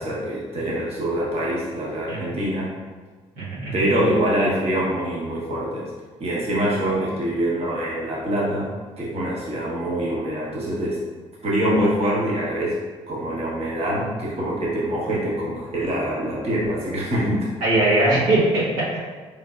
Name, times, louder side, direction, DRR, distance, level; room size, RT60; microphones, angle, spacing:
voice 1, 0.0-2.7 3.7-5.9 6.2-11.0 11.4-12.8 13.1-17.5, right 1 dB, 50° right, -6 dB, 1.1 m, -24 dB
voice 2, 3.4-3.8 17.6-19.0, right 1 dB, 90° right, -9 dB, 1.3 m, -21 dB
3.8 x 3.3 x 2.5 m, 1.4 s
supercardioid pair, 60°, 13 cm